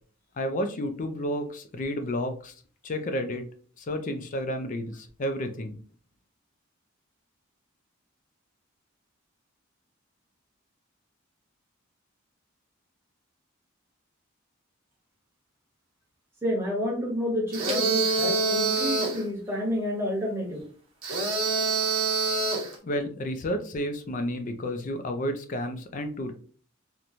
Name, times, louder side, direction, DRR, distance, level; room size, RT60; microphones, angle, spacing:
voice 1, 0.4-2.5 2.8-3.4 3.8-5.8 22.8-26.3, equal, 40° left, 7 dB, 0.3 m, -31 dB
voice 2, 16.4-20.6, left 1 dB, 10° right, -4 dB, 1.0 m, -29 dB
sound 1, 17.5-19.2 21.0-22.7, right 3 dB, 75° right, 0.9 m, -26 dB
2.9 x 2.1 x 2.5 m, 0.42 s
head